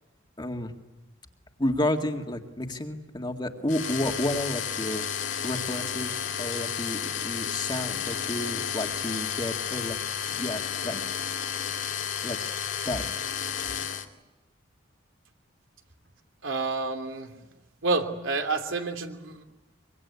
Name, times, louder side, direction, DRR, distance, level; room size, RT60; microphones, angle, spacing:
voice 1, 0.4-0.7 1.6-5.0 5.4-10.0 10.3-11.0 12.2-12.4 12.9-13.1, left 1 dB, 25° left, 4 dB, 2.1 m, -31 dB
sound 1, 3.7-14.0, left 8 dB, 70° left, 2.4 m, -32 dB
voice 2, 16.4-17.3 17.8-19.4, right 3 dB, 80° right, 5 dB, 3.0 m, -29 dB
24.5 x 24.5 x 9.7 m, 1.0 s
head